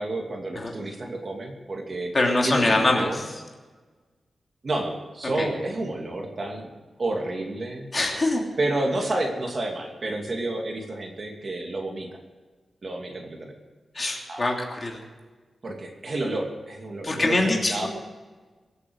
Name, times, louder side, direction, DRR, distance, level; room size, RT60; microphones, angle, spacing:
voice 1, 0.0-3.3 4.6-6.7 7.0-7.9 8.6-12.1 12.8-13.5 14.3-14.6 15.6-17.9, right 2 dB, 40° right, 2 dB, 2.6 m, -30 dB
voice 2, 2.1-3.1 5.4-5.5 7.9-8.4 13.9-14.5 14.8-15.0 17.0-17.9, left 2 dB, 30° left, 0 dB, 3.0 m, -23 dB
23.5 x 8.5 x 6.4 m, 1.4 s
wide cardioid pair, 145°, 0 cm